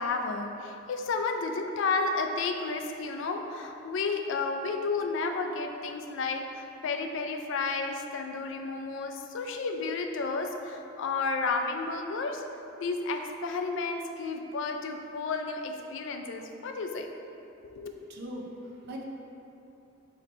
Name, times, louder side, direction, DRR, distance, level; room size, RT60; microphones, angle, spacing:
voice 1, 0.0-12.4 12.8-17.1 17.6-17.9, left 4 dB, 60° left, 5 dB, 0.3 m, -32 dB
voice 2, 18.1-19.0, equal, 50° right, -1 dB, 0.5 m, -40 dB
4.1 x 2.9 x 4.3 m, 2.8 s
head